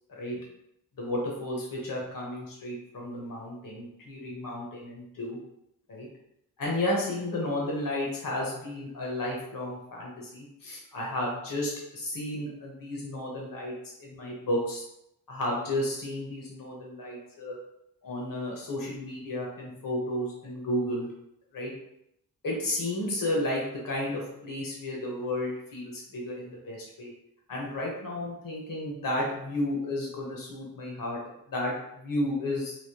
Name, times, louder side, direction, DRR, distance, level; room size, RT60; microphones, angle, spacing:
voice 1, 0.1-0.4 1.0-5.4 5.9-6.1 6.6-13.7 14.0-14.8 15.3-17.6 18.0-21.1 21.5-21.7 22.4-27.1 27.5-31.2 31.5-32.8, left 1 dB, 60° left, -3 dB, 1.1 m, -32 dB
3.5 x 2.8 x 2.8 m, 0.79 s
wide cardioid pair, 90°, 37 cm